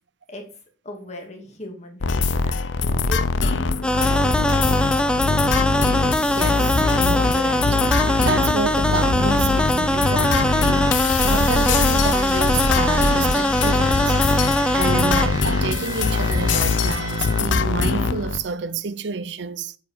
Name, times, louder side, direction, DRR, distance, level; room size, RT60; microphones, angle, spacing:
voice 1, 0.8-2.5 3.1-3.7 3.9-4.7, left 1 dB, 35° left, 2.2 m, -37 dB
sound 1, 2.0-18.4, left 4 dB, 70° left, 0.7 m, -22 dB
sound 2, 3.8-15.3, left 1 dB, 5° left, 0.4 m, -22 dB
voice 2, 6.2-7.8 8.2-14.2 14.7-19.8, right 5 dB, 60° right, 0.6 m, -29 dB
sound 3, 6.3-17.4, right 4 dB, 20° right, 1.0 m, -37 dB
9.5 x 4.9 x 5.6 m
head